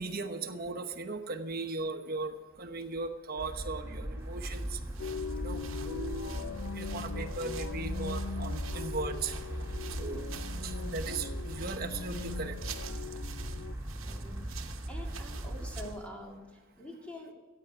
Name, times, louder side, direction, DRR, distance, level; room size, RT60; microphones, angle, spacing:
voice 1, 0.0-4.8 5.4-6.4 6.7-9.3 10.0-10.3 10.6-12.6, right 3 dB, 50° right, 6 dB, 1.0 m, -38 dB
sound 1, 3.4-15.9, right 1 dB, 15° right, 2.3 m, -39 dB
sound 2, 4.2-16.1, right 9 dB, 80° right, 1.0 m, -49 dB
sound 3, 5.0-13.7, left 6 dB, 75° left, 0.4 m, -41 dB
voice 2, 10.6-11.0 14.0-17.3, left 1 dB, 5° left, -1 dB, 2.5 m, -46 dB
15.0 x 8.8 x 4.8 m, 1.4 s
head